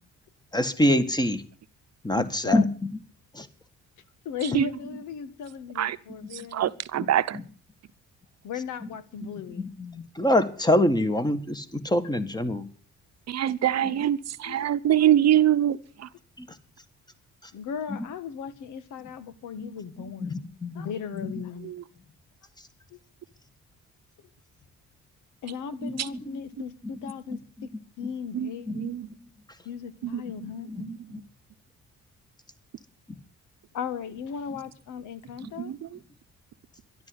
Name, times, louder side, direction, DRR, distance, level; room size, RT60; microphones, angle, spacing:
voice 1, 0.5-1.4 2.0-2.7 3.3-3.5 8.8-8.9 9.2-9.3 9.6-12.7 16.4-16.5 17.9-18.1 19.6-19.7 20.2-20.9 25.8-25.9 26.3-26.4 27.3-27.4 28.7-28.9 30.7-31.2, left 1 dB, 15° left, 1.9 m, -25 dB
voice 2, 2.2-2.7 4.2-6.7 8.4-9.7 14.4-14.7 15.0-15.1 17.5-21.7 22.9-23.0 25.4-27.7 28.0-28.7 29.6-30.7 33.7-35.7, left 7 dB, 80° left, 1.5 m, -37 dB
voice 3, 6.3-7.4 13.3-16.1 21.6-21.8 26.0-26.1 28.3-29.1 30.0-30.2 30.8-31.0 35.6-35.8, right 11 dB, 60° right, 0.9 m, -24 dB
13.0 x 11.5 x 7.9 m
cardioid pair, 90°, 30 cm